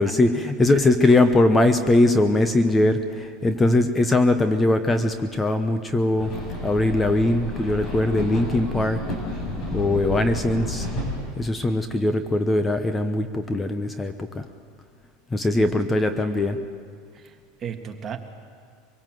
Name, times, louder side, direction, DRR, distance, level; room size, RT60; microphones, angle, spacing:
voice 1, 0.0-6.3 6.6-9.0 9.7-10.9 11.4-14.5 15.3-16.6, left 2 dB, 15° left, 8 dB, 0.9 m, -21 dB
sound 1, 6.2-11.3, left 1 dB, 40° left, 6.8 m, -31 dB
voice 2, 15.5-16.5 17.1-18.2, right 8 dB, 30° right, 4 dB, 1.8 m, -37 dB
24.0 x 18.0 x 7.8 m, 2.1 s
supercardioid pair, 125°, 0 cm